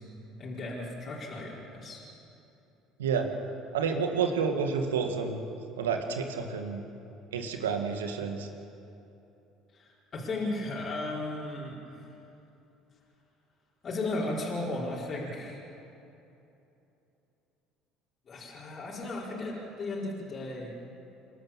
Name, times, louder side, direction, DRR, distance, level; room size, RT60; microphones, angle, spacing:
voice 1, 0.4-2.0 9.7-12.1 13.8-15.6 18.3-20.7, left 2 dB, 40° left, -6 dB, 4.7 m, -35 dB
voice 2, 3.7-5.4 5.8-6.8 7.3-8.5, right 6 dB, 85° right, 5 dB, 1.9 m, -29 dB
28.5 x 13.0 x 7.5 m, 2.9 s
hypercardioid pair, 65°, 0 cm